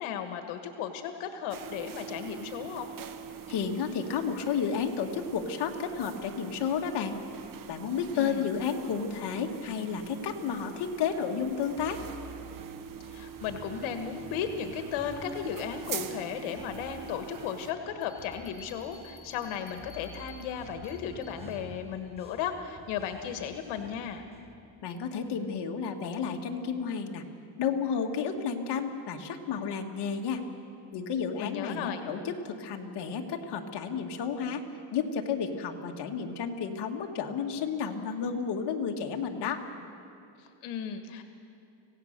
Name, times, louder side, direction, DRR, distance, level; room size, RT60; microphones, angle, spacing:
voice 1, 0.0-2.9 8.1-8.4 13.0-24.2 31.4-32.0 40.4-41.2, left 8 dB, 85° left, 7 dB, 1.5 m, -35 dB
sound 1, 1.5-17.7, right 8 dB, 45° right, 1.2 m, -44 dB
voice 2, 3.5-7.2 7.7-12.0 24.8-27.2 27.6-30.4 30.9-34.6 34.9-39.6, left 6 dB, 55° left, 3 dB, 1.9 m, -32 dB
sound 2, 11.8-24.5, right 2 dB, 10° right, 1.5 m, -50 dB
sound 3, 18.0-21.7, equal, 25° left, 4.9 m, -54 dB
25.5 x 17.0 x 6.7 m, 2.5 s
cardioid pair, 125°, 48 cm